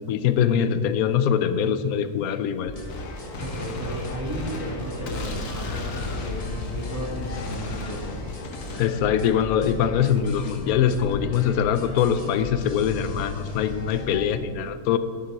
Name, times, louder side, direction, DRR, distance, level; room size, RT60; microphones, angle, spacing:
voice 1, 0.1-2.7 8.8-15.0, left 8 dB, 80° left, 11 dB, 1.1 m, -23 dB
sound 1, 2.7-14.3, left 1 dB, 30° left, 1.0 m, -38 dB
Gunshot gunfire, 2.9-8.8, left 2 dB, 65° left, 1.4 m, -34 dB
voice 2, 3.4-8.3, equal, 10° right, -6 dB, 2.9 m, -34 dB
11.5 x 7.2 x 5.2 m, 2.1 s
omnidirectional pair, 1.5 m